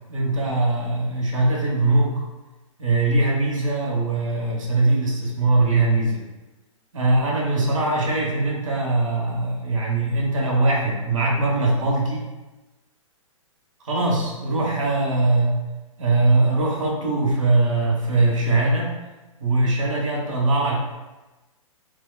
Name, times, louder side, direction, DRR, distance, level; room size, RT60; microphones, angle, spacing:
voice 1, 0.1-2.2 2.8-6.2 6.9-12.2 13.8-15.6 16.0-18.9 19.4-20.8, right 2 dB, 70° right, -2 dB, 0.9 m, -21 dB
4.4 x 2.1 x 2.2 m, 1.1 s
figure-of-eight pair, 120°, 17 cm